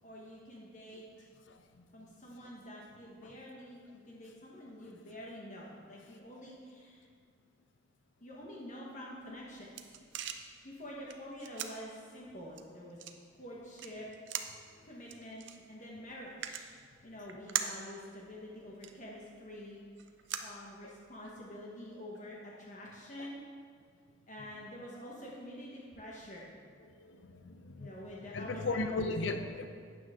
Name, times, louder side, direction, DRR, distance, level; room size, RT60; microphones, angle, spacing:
voice 1, 0.0-1.3 1.9-7.0 8.2-9.8 10.6-13.0 13.3-14.1 14.8-16.7 17.0-19.8 20.4-23.4 24.3-26.5 27.7-29.1, equal, 40° left, -4 dB, 1.3 m, -47 dB
sound 1, 9.2-21.3, right 9 dB, 70° right, 0.7 m, -44 dB
voice 2, 27.4-29.7, left 2 dB, 80° left, 8 dB, 0.7 m, -36 dB
12.0 x 9.1 x 3.7 m, 2.1 s
head